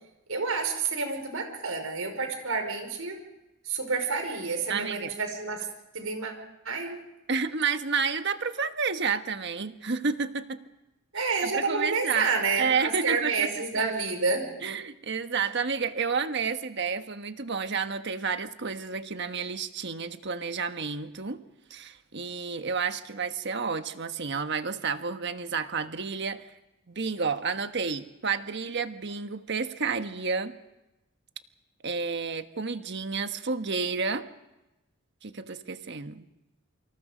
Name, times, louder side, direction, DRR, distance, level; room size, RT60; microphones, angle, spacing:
voice 1, 0.3-3.2 3.7-5.7 5.9-6.3 6.7-7.0 11.1-14.6, right 4 dB, 85° right, 5 dB, 5.3 m, -29 dB
voice 2, 4.7-5.1 7.3-10.6 11.2-12.3 12.6-13.5 13.7-13.9 14.6-21.4 21.7-26.5 26.9-30.5 31.8-34.2 35.2-36.3, right 5 dB, 55° right, 8 dB, 1.3 m, -30 dB
27.5 x 26.0 x 5.2 m, 0.97 s
head